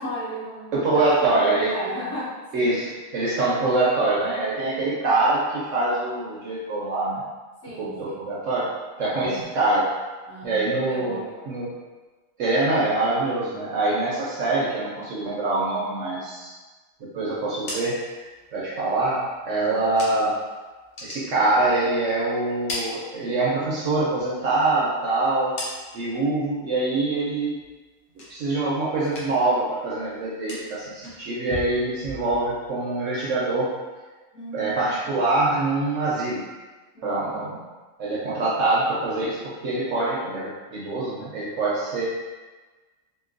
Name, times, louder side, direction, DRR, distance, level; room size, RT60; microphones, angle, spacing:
voice 1, 0.0-2.8 4.7-5.1 7.6-8.2 9.0-9.4 10.3-11.5 18.6-18.7 19.5-19.8 34.3-34.9 36.9-37.5, equal, 70° left, -17 dB, 2.0 m, -36 dB
voice 2, 0.7-1.7 2.5-7.2 7.8-8.7 9.0-9.9 10.4-11.7 12.4-16.5 17.1-18.0 18.5-20.3 21.0-25.5 25.9-27.5 28.3-33.7 34.5-36.4 37.0-37.6 38.0-42.1, right 2 dB, 60° right, -6 dB, 0.9 m, -24 dB
sound 1, 17.4-20.5 20.8-22.1 22.4-23.7 24.1-26.2 26.6-27.0 27.4-28.7 29.0-29.6 29.8-32.7, left 1 dB, 90° left, 1.4 m, -39 dB
3.8 x 2.2 x 2.5 m, 1.3 s
omnidirectional pair, 1.6 m